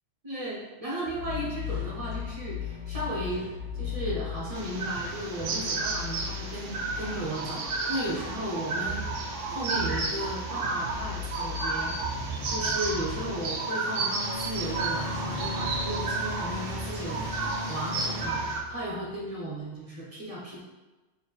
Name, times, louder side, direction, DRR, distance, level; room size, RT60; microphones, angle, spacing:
voice 1, 0.2-3.5 3.7-9.1 9.4-12.0 12.5-17.2 17.7-18.4 18.7-20.6, right 1 dB, 30° right, -5 dB, 1.0 m, -35 dB
sound 1, 1.1-19.2, left 3 dB, 55° right, 1.2 m, -37 dB
sound 2, 4.5-18.6, right 3 dB, 80° right, 1.0 m, -32 dB
4.7 x 2.9 x 3.2 m, 1.2 s
omnidirectional pair, 1.3 m